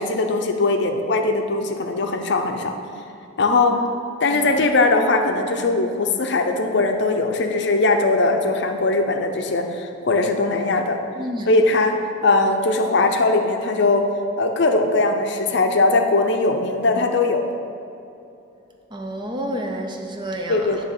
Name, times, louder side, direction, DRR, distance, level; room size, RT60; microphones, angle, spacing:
voice 1, 0.0-2.7 3.4-3.9 4.2-11.0 11.5-14.1 14.4-17.4 20.5-20.8, left 3 dB, 55° left, 4 dB, 0.6 m, -20 dB
voice 2, 11.2-11.5 18.9-20.8, equal, 25° right, 3 dB, 0.5 m, -30 dB
9.6 x 3.4 x 6.6 m, 2.7 s
head